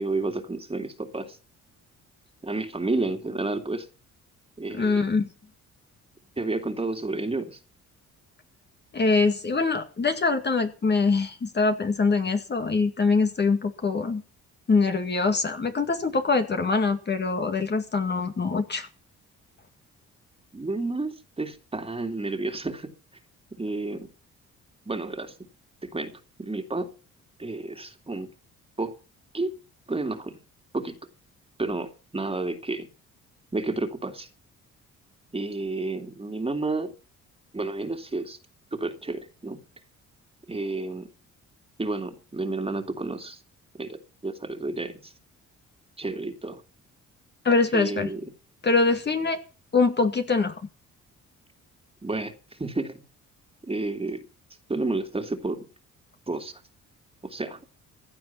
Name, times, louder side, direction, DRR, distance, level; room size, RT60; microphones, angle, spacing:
voice 1, 0.0-1.4 2.4-3.9 4.6-5.0 6.4-7.6 20.5-22.9 23.6-24.1 24.9-25.3 25.8-26.1 26.4-26.9 27.4-28.3 28.8-28.9 29.3-29.6 29.9-30.4 30.7-31.0 31.6-32.9 33.5-34.3 35.3-36.9 37.5-38.4 38.7-39.6 40.5-41.1 41.8-43.4 43.8-45.1 46.0-46.6 47.7-48.3 52.0-52.3 52.6-53.0 53.7-54.2 54.7-55.6 56.3-56.5 57.2-57.6, right 2 dB, 20° right, 6 dB, 2.6 m, -30 dB
voice 2, 4.7-5.3 8.9-14.2 14.7-18.9 47.4-48.1 48.6-49.4 49.7-50.6, left 4 dB, 35° left, 6 dB, 2.1 m, -23 dB
16.0 x 11.0 x 5.8 m, 0.36 s
cardioid pair, 90°, 30 cm